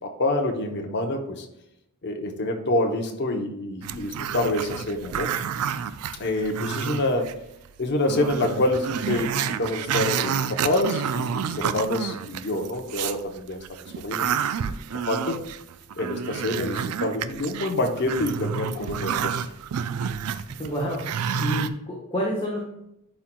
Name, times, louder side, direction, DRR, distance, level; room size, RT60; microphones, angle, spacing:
voice 1, 0.0-1.5 2.0-5.3 6.2-7.3 7.8-14.3 14.7-14.8 15.1-15.4 16.0-19.4, left 1 dB, 50° left, 3 dB, 0.8 m, -27 dB
Growling, 3.8-7.3 7.7-7.8 8.1-13.2 13.6-21.7, right 7 dB, 75° right, 0.4 m, -29 dB
voice 2, 20.6-21.0 21.4-22.6, equal, 25° left, -3 dB, 1.1 m, -28 dB
11.0 x 4.4 x 2.2 m, 0.81 s
head